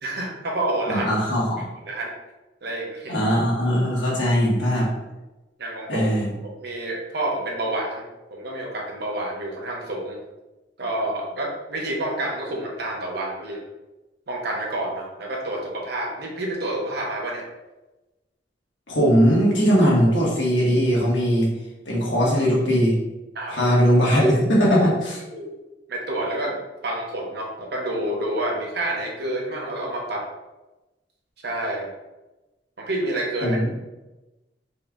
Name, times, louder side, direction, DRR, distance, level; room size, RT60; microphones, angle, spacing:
voice 1, 0.0-1.1 1.9-2.1 2.6-3.2 5.6-6.1 6.6-8.0 8.3-10.2 10.8-13.6 14.3-17.4 23.3-23.7 25.2-25.6 25.9-26.6 26.8-30.3 31.4-31.9 32.8-33.6, right 1 dB, 60° right, -1 dB, 0.9 m, -28 dB
voice 2, 0.9-1.6 3.1-4.9 5.9-6.3 18.9-21.5 21.8-23.0 23.5-25.2 33.4-33.7, equal, 75° left, -4 dB, 1.3 m, -20 dB
4.2 x 2.3 x 3.7 m, 1.0 s
head